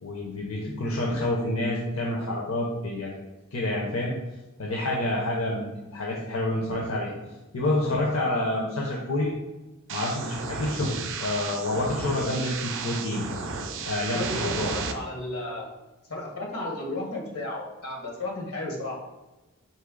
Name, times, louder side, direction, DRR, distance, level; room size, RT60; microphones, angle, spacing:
voice 1, 0.0-3.2 3.5-4.1 4.6-7.1 7.5-9.3 9.9-13.2 13.8-14.7, left 1 dB, 70° left, -2 dB, 0.7 m, -28 dB
sound 1, 9.9-14.9, right 5 dB, 60° right, 0.5 m, -33 dB
voice 2, 14.1-15.7 16.1-19.0, left 2 dB, 90° left, -2 dB, 1.4 m, -33 dB
4.4 x 3.1 x 3.7 m, 1.1 s
head